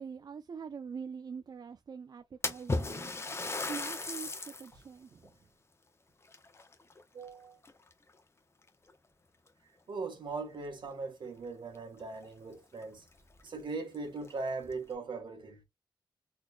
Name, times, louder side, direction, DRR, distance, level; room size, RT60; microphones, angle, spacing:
voice 1, 0.0-3.2 3.6-5.3, right 6 dB, 60° right, 0.4 m, -44 dB
Splash splatter, 2.4-4.7 5.2-5.3 6.2-7.3 7.6-8.1 8.9-9.0 9.5-9.6 11.7-11.8 12.2-12.3 12.8-12.9 13.3-13.4 14.2-14.7, left 3 dB, 35° left, 0.8 m, -36 dB
voice 2, 7.1-7.6 9.9-13.0 13.4-15.6, right 3 dB, 75° right, 1.5 m, -39 dB
4.1 x 3.1 x 2.2 m
wide cardioid pair, 110°, 8 cm